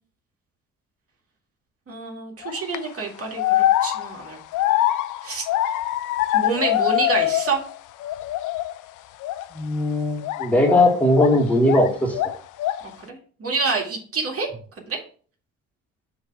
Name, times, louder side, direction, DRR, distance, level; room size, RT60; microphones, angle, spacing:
voice 1, 1.9-4.4 5.2-5.4 6.3-7.6 13.0-14.5 14.8-15.0, right 4 dB, 50° right, 1 dB, 2.1 m, -27 dB
sound 1, 2.4-2.8 3.4-7.7 8.0-8.8 9.2-9.5 10.2-11.9 12.1-12.9, left 14 dB, 85° left, 0.6 m, -23 dB
voice 2, 9.5-12.2, left 1 dB, 5° left, 0 dB, 2.0 m, -19 dB
7.0 x 3.2 x 5.9 m, 0.43 s
cardioid pair, 90°, 30 cm